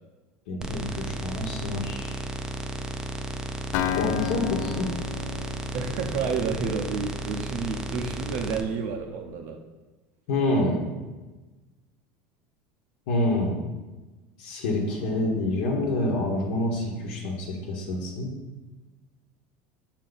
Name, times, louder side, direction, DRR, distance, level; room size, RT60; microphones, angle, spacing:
voice 1, 0.5-2.2 3.9-4.9 10.3-10.8 13.1-13.6 14.4-18.3, left 2 dB, 75° left, -1 dB, 1.1 m, -27 dB
sound 1, 0.6-8.6, right 1 dB, 10° right, 0.4 m, -34 dB
Acoustic guitar, 3.7-7.6, left 10 dB, 55° left, 0.3 m, -33 dB
voice 2, 5.7-9.6, right 5 dB, 55° right, 3 dB, 0.6 m, -30 dB
5.9 x 4.2 x 4.0 m, 1.2 s
supercardioid pair, 150°, 5 cm